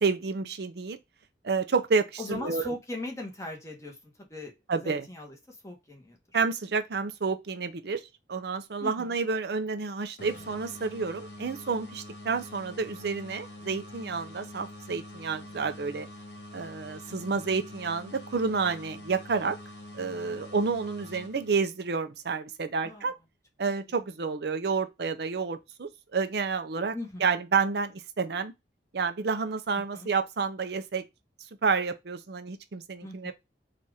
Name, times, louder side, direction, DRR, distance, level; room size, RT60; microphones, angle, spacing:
voice 1, 0.0-1.0 1.4-2.7 4.7-5.1 6.3-8.0 8.3-16.1 16.5-19.6 20.0-23.1 23.6-26.9 27.2-28.5 28.9-31.0 31.6-33.3, right 4 dB, 65° right, 0.5 m, -29 dB
voice 2, 2.2-4.5 4.8-6.2 8.8-9.2 22.8-23.1 26.9-27.3 29.9-30.1 33.0-33.3, left 2 dB, 15° left, 1.2 m, -39 dB
sound 1, 10.2-21.9, left 1 dB, 75° left, 1.4 m, -45 dB
4.2 x 2.5 x 4.7 m
head